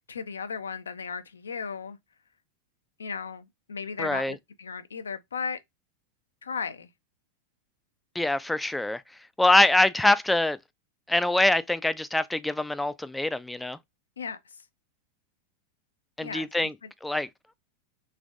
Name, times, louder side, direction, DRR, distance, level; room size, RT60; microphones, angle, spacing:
voice 1, 0.1-2.0 3.0-5.6 6.4-6.9 14.2-14.6 16.2-16.9, left 5 dB, 70° left, 0.5 m, -36 dB
voice 2, 4.0-4.4 8.2-9.0 9.4-10.6 11.1-13.8 16.2-16.7 17.0-17.3, left 2 dB, 5° left, 0.3 m, -24 dB
3.3 x 3.3 x 2.4 m
figure-of-eight pair, 90°, 0 cm